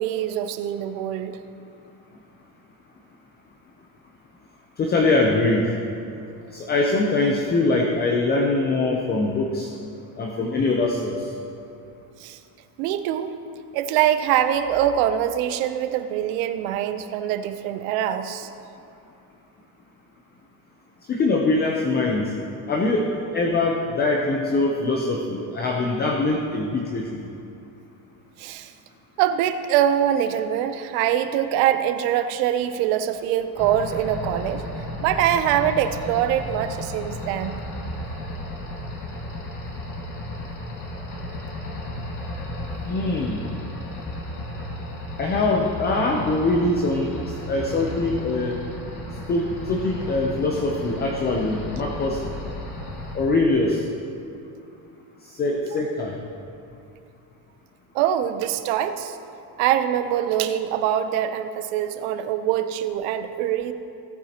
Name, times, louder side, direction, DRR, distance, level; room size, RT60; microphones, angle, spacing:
voice 1, 0.0-1.4 12.2-12.4 12.8-13.3 13.7-18.5 28.4-28.7 29.2-34.6 35.0-37.5 57.9-59.2 59.6-63.7, right 10 dB, 70° right, 10 dB, 0.8 m, -23 dB
voice 2, 4.8-5.8 6.5-9.7 10.2-11.3 21.1-22.2 22.7-23.1 23.3-27.1 42.8-43.4 45.2-47.1 47.5-48.6 49.3-52.2 53.1-53.8 55.4-56.2, left 2 dB, 20° left, 1 dB, 0.7 m, -23 dB
sound 1, 33.6-53.2, left 1 dB, 40° left, 2.2 m, -34 dB
17.5 x 9.1 x 2.9 m, 2.7 s
cardioid pair, 150°, 45 cm